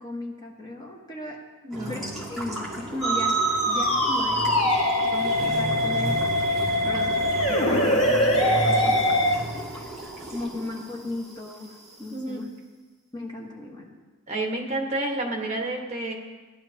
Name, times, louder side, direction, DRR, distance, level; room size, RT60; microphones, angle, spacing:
voice 1, 0.0-1.4 1.9-4.8 5.0-6.2 6.8-9.0 10.3-12.5 13.1-13.9, left 2 dB, 20° left, -1 dB, 1.4 m, -36 dB
voice 2, 1.6-2.1 10.2-10.3 12.1-12.4 14.3-16.1, right 2 dB, 30° right, 0 dB, 1.5 m, -30 dB
sound 1, 1.7-12.1, right 1 dB, ahead, 2.6 m, -35 dB
Musical instrument, 3.0-9.4, equal, 70° left, 1.3 m, -23 dB
17.5 x 11.5 x 2.9 m, 1.3 s
head